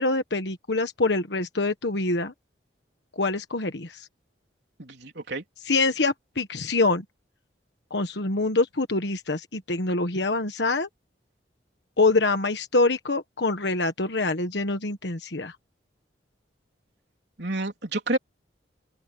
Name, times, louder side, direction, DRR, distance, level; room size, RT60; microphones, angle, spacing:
voice 1, 0.0-2.3 3.2-4.1 5.7-7.0 7.9-10.9 12.0-15.5, left 3 dB, 70° left, 1.4 m, -25 dB
voice 2, 4.8-5.4 17.4-18.2, right 2 dB, 70° right, 3.6 m, -29 dB
open air
head